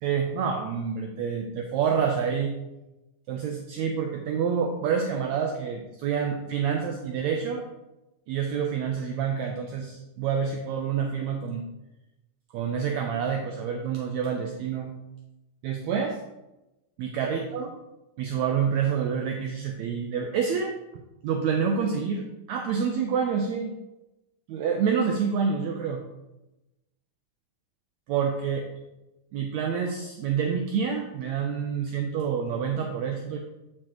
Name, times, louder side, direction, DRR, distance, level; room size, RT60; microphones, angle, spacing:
voice 1, 0.0-2.5 3.3-7.6 8.3-11.6 12.5-14.9 15.6-16.2 17.0-17.7 18.2-20.7 21.2-23.7 24.5-26.0 28.1-28.6 29.3-33.4, right 6 dB, 85° right, 3 dB, 1.6 m, -27 dB
8.5 x 6.7 x 3.0 m, 0.99 s
omnidirectional pair, 3.9 m